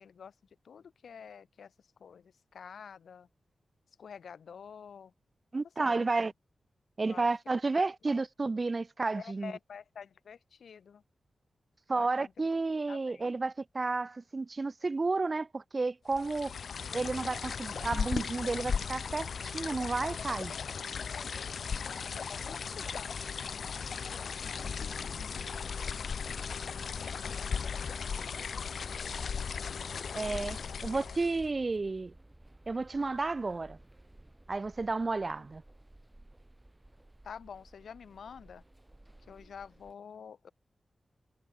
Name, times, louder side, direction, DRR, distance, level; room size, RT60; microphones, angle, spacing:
voice 1, 0.0-3.3 4.0-5.1 5.9-6.1 7.0-7.4 7.7-7.9 9.1-11.0 11.9-12.5 12.9-13.2 16.5-16.8 21.0-21.5 21.8-25.8 27.0-28.5 30.5-31.2 37.2-38.6 39.3-40.5, left 7 dB, 85° left, 2.9 m, -50 dB
voice 2, 5.5-6.3 7.0-9.5 11.9-16.5 16.9-20.5 30.1-30.6 30.8-32.1 32.7-33.8 34.5-35.6, right 3 dB, 30° right, 0.5 m, -32 dB
sound 1, 16.1-31.5, left 6 dB, 65° left, 1.5 m, -37 dB
sound 2, 21.6-39.9, right 1 dB, 10° right, 5.6 m, -56 dB
wide cardioid pair, 175°, 0 cm